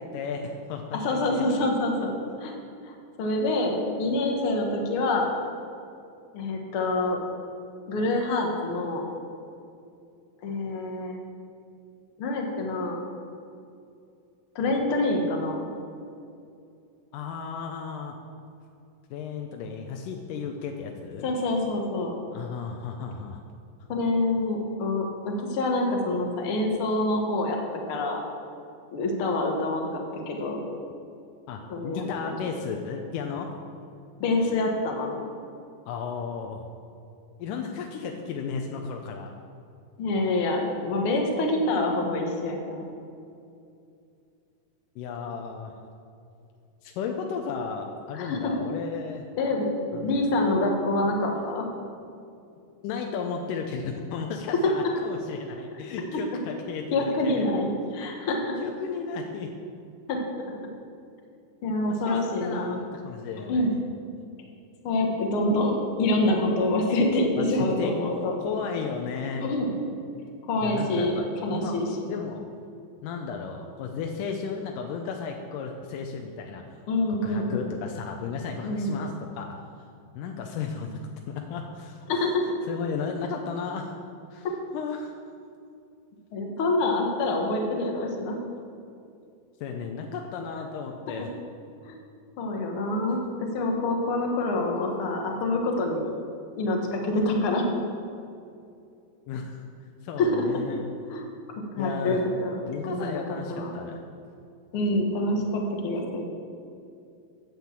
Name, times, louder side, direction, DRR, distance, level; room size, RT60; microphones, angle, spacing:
voice 1, 0.1-1.4 17.1-18.1 19.1-21.3 22.3-23.4 31.5-33.5 35.9-36.7 37.4-39.3 45.0-45.7 46.8-49.3 49.9-50.2 52.6-57.5 58.6-59.5 61.9-63.7 67.4-67.9 68.4-69.5 70.6-71.8 72.1-72.5 73.0-76.8 77.2-79.5 79.8-79.9 80.2-81.0 81.3-82.3 82.7-84.0 84.3-84.5 84.7-85.2 89.6-91.3 99.3-99.6 100.0-100.8 101.8-102.2 102.7-104.0, left 5 dB, 75° left, 2 dB, 2.0 m, -34 dB
voice 2, 1.0-2.1 2.4-2.5 2.9-5.3 6.3-7.2 7.9-9.0 10.4-11.2 12.2-13.0 14.5-15.7 21.2-22.2 23.9-28.2 28.9-30.6 31.7-32.1 32.4-32.5 34.2-35.1 40.0-42.9 48.1-48.4 49.4-49.7 50.0-51.7 56.9-58.5 60.1-60.2 61.6-62.8 63.5-63.7 64.8-68.4 69.4-69.7 70.5-71.9 76.9-77.7 78.6-79.0 82.1-82.4 86.3-88.4 91.8-91.9 92.4-96.1 96.6-97.7 100.2-100.4 101.1-101.2 101.7-102.6 102.8-103.2 103.5-103.8 104.7-106.2, left 2 dB, 60° left, 1 dB, 1.4 m, -26 dB
8.9 x 7.7 x 7.3 m, 2.5 s
omnidirectional pair, 4.3 m